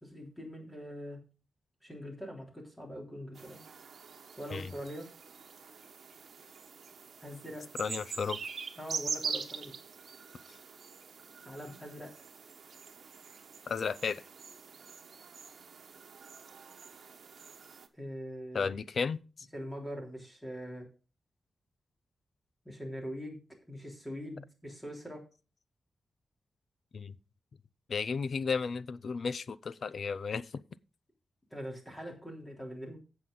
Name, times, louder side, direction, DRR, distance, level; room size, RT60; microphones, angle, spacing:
voice 1, 0.0-1.2 1.8-3.6 4.4-5.1 7.2-7.7 8.8-9.7 11.5-12.1 18.0-18.7 19.5-20.9 22.7-23.4 23.7-25.3 31.5-33.0, equal, 10° left, 3.4 m, -42 dB
sound 1, 3.3-17.9, right 6 dB, 55° right, 1.3 m, -44 dB
voice 2, 7.8-8.4 13.7-14.2 18.5-19.5 26.9-27.2 27.9-30.6, left 5 dB, 50° left, 0.5 m, -34 dB
16.0 x 6.1 x 3.9 m
wide cardioid pair, 170°, 0 cm